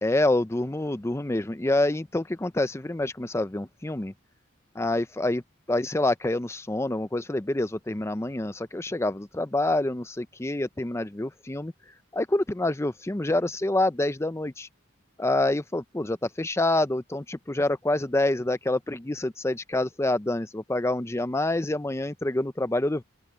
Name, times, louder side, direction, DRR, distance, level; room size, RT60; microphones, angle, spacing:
voice 1, 0.0-4.1 4.8-5.4 5.7-11.7 12.1-14.7 15.2-23.0, left 2 dB, 15° left, 0.5 m, -27 dB
open air
head